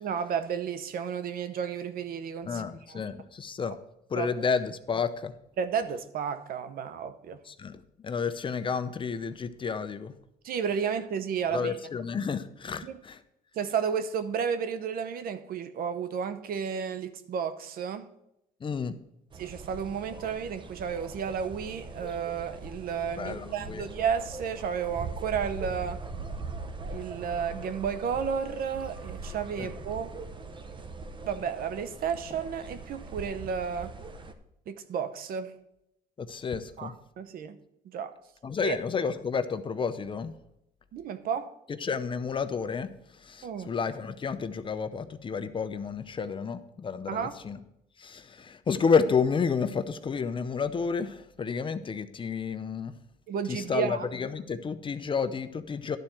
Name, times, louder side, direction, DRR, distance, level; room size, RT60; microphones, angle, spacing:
voice 1, 0.0-2.6 2.9-3.0 3.7-3.8 4.1-4.3 5.6-7.4 10.4-11.8 12.8-13.0 13.6-18.1 19.4-26.0 26.9-30.1 31.2-33.9 34.7-35.6 36.8-37.6 37.8-38.1 38.6-38.8 40.9-41.5 43.4-43.8 47.1-47.3 53.3-54.1, right 7 dB, 60° right, 0.9 m, -32 dB
voice 2, 2.5-3.8 4.1-5.3 7.5-10.1 11.5-13.2 18.6-18.9 23.2-23.9 29.6-29.7 36.2-36.9 38.4-40.3 41.8-42.9 43.2-47.6 48.0-53.0 53.5-56.0, left 5 dB, 30° left, 0.7 m, -30 dB
sound 1, 19.3-34.3, right 3 dB, 30° right, 0.9 m, -41 dB
11.5 x 4.3 x 7.8 m
cardioid pair, 110°, 17 cm